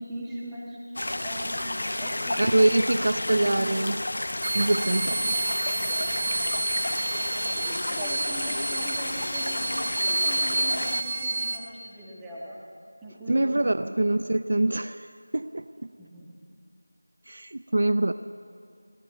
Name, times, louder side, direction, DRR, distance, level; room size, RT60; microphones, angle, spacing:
voice 1, 0.0-3.8 7.4-12.6 13.0-13.7 14.0-14.1 16.0-16.3, right 1 dB, 5° right, -6 dB, 1.6 m, -40 dB
sound 1, 1.0-11.0, left 1 dB, 60° left, 0.9 m, -31 dB
voice 2, 2.4-4.0 4.5-5.4 13.3-15.9 17.3-18.1, right 1 dB, 55° right, 12 dB, 0.5 m, -24 dB
sound 2, 4.4-11.6, right 2 dB, 25° right, 1.3 m, -29 dB
21.5 x 18.5 x 7.7 m, 2.4 s
figure-of-eight pair, 175°, 0 cm